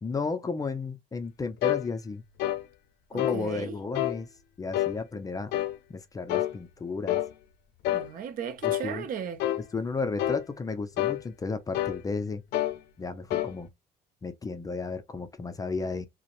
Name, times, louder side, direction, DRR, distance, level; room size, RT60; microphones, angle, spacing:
voice 1, 0.0-2.2 3.1-4.3 4.6-5.5 5.9-7.2 8.6-9.1 9.7-12.4 13.0-13.7 14.2-16.1, left 4 dB, 20° left, 0.4 m, -33 dB
sound 1, 1.6-1.9 2.4-2.6 3.2-3.4 3.9-4.2 4.7-5.0 5.5-5.8 6.3-6.6 7.1-7.3 7.8-8.1 8.6-8.9 9.4-9.6 10.2-10.5 11.0-11.2 11.7-12.0 12.5-12.8 13.3-13.5, left 14 dB, 80° left, 0.4 m, -27 dB
voice 2, 3.1-3.8 7.9-9.4, right 7 dB, 55° right, 0.5 m, -36 dB
2.8 x 2.0 x 2.5 m
cardioid pair, 110°, 17 cm